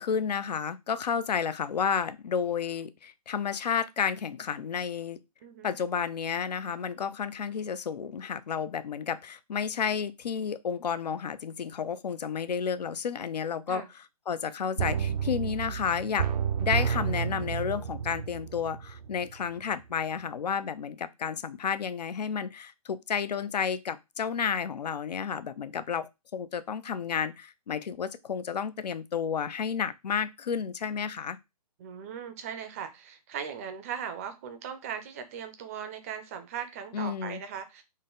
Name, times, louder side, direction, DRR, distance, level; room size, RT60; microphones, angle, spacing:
voice 1, 0.0-5.2 5.6-13.8 14.3-16.3 16.6-31.4 36.9-37.4, left 7 dB, 90° left, 0.5 m, -31 dB
voice 2, 5.4-5.7 13.7-13.9 31.8-37.8, right 8 dB, 25° right, 0.4 m, -38 dB
sound 1, 14.8-19.5 19.8-19.9, right 7 dB, 85° right, 0.5 m, -31 dB
3.9 x 2.1 x 3.7 m
hypercardioid pair, 150°, 20 cm